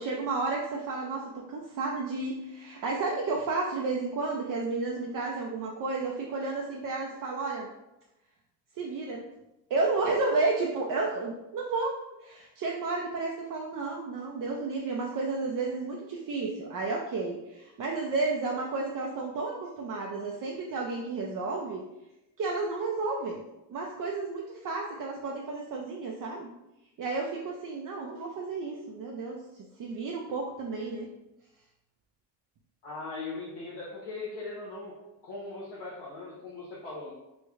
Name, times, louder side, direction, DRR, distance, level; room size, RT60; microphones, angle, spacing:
voice 1, 0.0-7.7 8.8-9.2 9.7-21.8 22.4-23.4 23.7-26.5 27.0-29.4 29.8-31.1, right 3 dB, 55° right, -1 dB, 0.5 m, -32 dB
voice 2, 32.8-37.1, left 3 dB, 90° left, -7 dB, 0.8 m, -39 dB
3.2 x 2.1 x 3.5 m, 0.94 s
cardioid pair, 110°, 40 cm